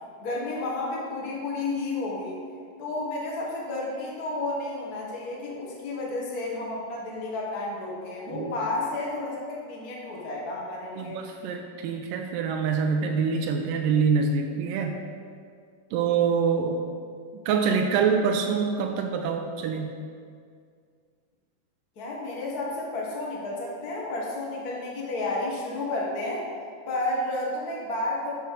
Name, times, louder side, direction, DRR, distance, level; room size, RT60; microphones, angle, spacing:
voice 1, 0.2-2.4 2.8-11.2 21.9-26.4 26.9-28.3, left 2 dB, 55° left, -4 dB, 1.0 m, -31 dB
voice 2, 11.0-15.0 15.9-16.8 17.5-19.9, right 5 dB, 85° right, 3 dB, 2.0 m, -25 dB
12.5 x 6.1 x 6.4 m, 2.2 s
omnidirectional pair, 4.7 m